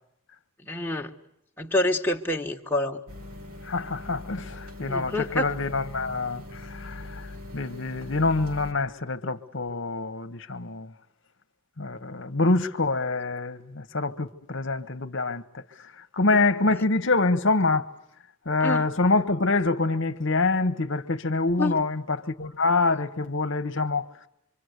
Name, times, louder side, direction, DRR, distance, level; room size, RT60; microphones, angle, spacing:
voice 1, 0.6-1.1 1.6-3.0 4.9-5.5 16.6-16.8 18.6-18.9 21.6-21.8, left 1 dB, 10° left, 1.4 m, -27 dB
sound 1, 3.1-8.7, left 2 dB, 85° right, 4.8 m, -41 dB
voice 2, 3.7-7.3 7.5-10.9 11.8-15.6 16.1-17.9 18.5-24.1, left 3 dB, 55° left, 1.1 m, -26 dB
25.5 x 25.0 x 8.1 m
head